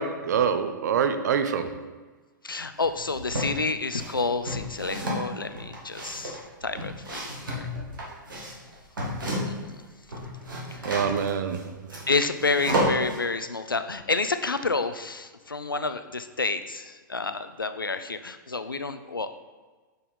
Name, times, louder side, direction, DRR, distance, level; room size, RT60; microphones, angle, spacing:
voice 1, 0.0-2.0 10.8-11.8, right 7 dB, 55° right, 0.5 m, -26 dB
voice 2, 2.4-7.7 9.4-9.9 10.7-10.8 12.1-19.3, left 3 dB, 85° left, 0.4 m, -29 dB
sound 1, 2.8-3.5 3.9-9.7 10.0-13.2, equal, 75° right, 1.6 m, -31 dB
6.5 x 4.4 x 3.5 m
figure-of-eight pair, 100°, 11 cm